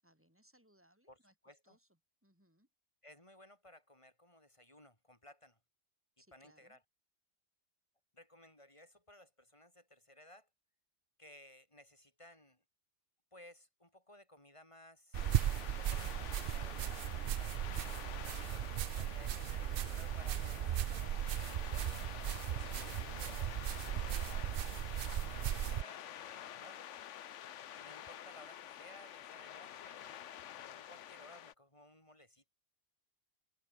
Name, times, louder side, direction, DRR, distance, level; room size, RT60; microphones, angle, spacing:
voice 1, 0.0-2.7 6.2-6.8, right 1 dB, 10° right, 8.0 m, -70 dB
voice 2, 1.4-1.8 3.0-5.6 6.3-6.8 8.1-10.5 11.2-12.6 13.3-15.4 15.6-17.9 18.5-19.4 20.0-21.9 22.6-24.5 25.2-26.9 27.7-32.5, left 1 dB, 25° left, 4.0 m, -59 dB
sound 1, 15.1-31.5, left 10 dB, 90° left, 1.1 m, -49 dB
sound 2, 15.1-25.8, right 11 dB, 60° right, 0.7 m, -37 dB
omnidirectional pair, 1.2 m